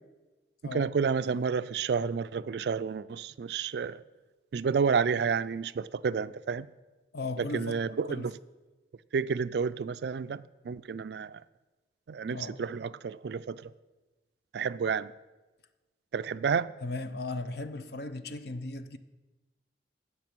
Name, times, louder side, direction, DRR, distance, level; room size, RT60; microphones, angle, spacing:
voice 1, 0.6-4.0 4.5-6.7 7.4-8.3 9.1-11.4 12.1-13.7 14.5-15.1 16.1-16.7, right 5 dB, 65° right, 0.3 m, -30 dB
voice 2, 7.1-7.8 8.1-8.3 12.3-12.6 16.8-19.0, left 2 dB, 60° left, 0.6 m, -37 dB
16.0 x 5.8 x 6.1 m
head